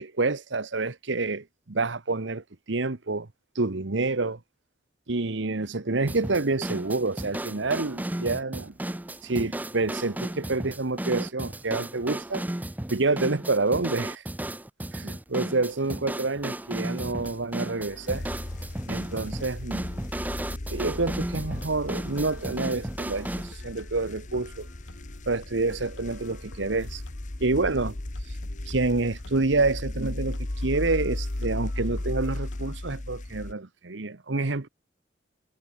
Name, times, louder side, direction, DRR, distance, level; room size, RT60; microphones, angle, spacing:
voice 1, 0.0-3.3 3.5-4.4 5.1-8.7 9.2-12.4 12.9-14.2 14.9-18.2 18.9-19.9 20.7-24.7 25.3-27.0 27.4-28.0 28.7-34.7, right 3 dB, 75° right, 1.2 m, -28 dB
sound 1, 6.1-23.5, right 1 dB, 10° right, 0.5 m, -34 dB
sound 2, 16.7-32.8, left 2 dB, 80° left, 2.3 m, -50 dB
sound 3, 18.1-33.5, left 1 dB, 40° left, 1.1 m, -36 dB
head